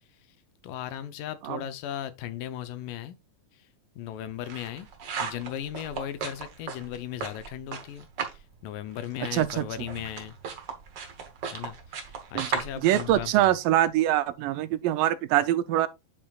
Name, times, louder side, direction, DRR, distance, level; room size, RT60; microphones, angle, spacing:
voice 1, 0.6-3.2 4.0-4.9 5.2-8.1 8.3-10.3 11.5-13.6, left 11 dB, 85° left, 2.4 m, -37 dB
sound 1, 4.1-8.5 8.7-14.1, right 6 dB, 70° right, 1.0 m, -37 dB
voice 2, 9.3-9.7 12.4-12.5 12.8-15.9, right 13 dB, 90° right, 2.3 m, -24 dB
8.7 x 5.1 x 2.4 m
omnidirectional pair, 3.8 m